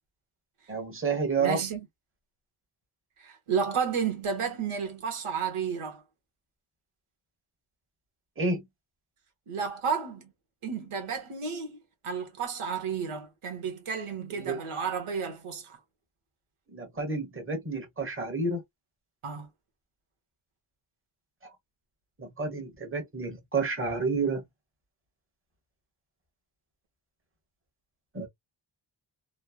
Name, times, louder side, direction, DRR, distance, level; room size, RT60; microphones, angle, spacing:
voice 1, 0.7-1.6 8.4-8.7 14.3-14.6 16.7-18.6 21.4-21.5 22.2-24.4 28.1-28.3, right 4 dB, 25° right, 1.2 m, -30 dB
voice 2, 1.4-1.9 3.2-6.0 9.5-10.3 10.6-11.8 12.0-15.8 19.2-19.5, right 6 dB, 85° right, 1.0 m, -32 dB
3.1 x 2.0 x 2.2 m
wide cardioid pair, 100°, 49 cm